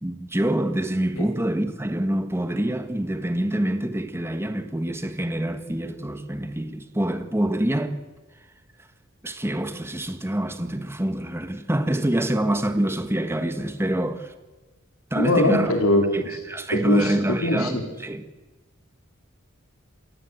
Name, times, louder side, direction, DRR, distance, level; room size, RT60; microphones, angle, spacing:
voice 1, 0.0-8.0 9.2-14.3 15.1-15.7 16.1-18.2, right 1 dB, 10° right, 1.4 m, -26 dB
voice 2, 15.1-16.3 16.7-17.1 17.4-17.9, left 1 dB, 80° left, 4.1 m, -22 dB
28.5 x 16.0 x 8.0 m
head